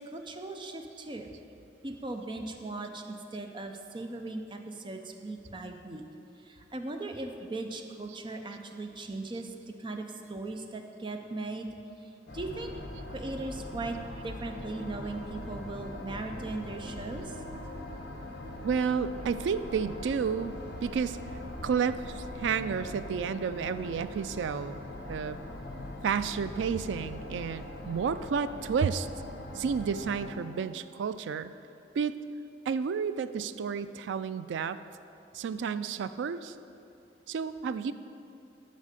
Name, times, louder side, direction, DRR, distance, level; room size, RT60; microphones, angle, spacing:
voice 1, 0.0-1.3 1.8-6.0 6.4-9.5 9.8-11.7 12.0-12.7 13.1-14.0 14.2-17.4, right 2 dB, 25° right, 4 dB, 0.5 m, -38 dB
sound 1, 12.3-30.3, left 1 dB, 80° left, 1.0 m, -41 dB
voice 2, 18.6-20.5 20.8-21.2 21.6-24.8 25.1-25.4 26.0-29.1 29.5-31.5 31.9-32.1 32.7-34.8 35.3-36.5 37.3-37.9, right 6 dB, 90° right, 13 dB, 0.3 m, -31 dB
8.3 x 5.5 x 6.7 m, 2.8 s
head